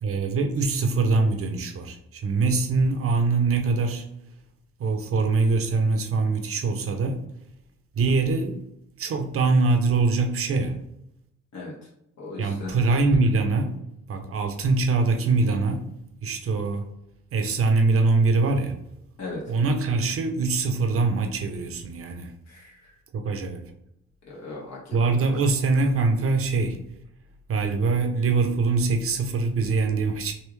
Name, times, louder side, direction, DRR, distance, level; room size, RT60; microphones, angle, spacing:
voice 1, 0.0-4.1 4.8-7.2 7.9-8.6 9.0-10.8 12.4-13.8 14.1-15.9 16.2-16.9 17.3-18.8 19.5-22.3 23.1-23.7 24.9-26.8 27.5-30.3, right 3 dB, 50° right, 0.7 m, -23 dB
voice 2, 12.2-12.8 19.2-19.5 22.5-22.8 24.2-25.3, left 2 dB, 60° left, 1.4 m, -38 dB
3.4 x 2.6 x 3.1 m
cardioid pair, 90°, 30 cm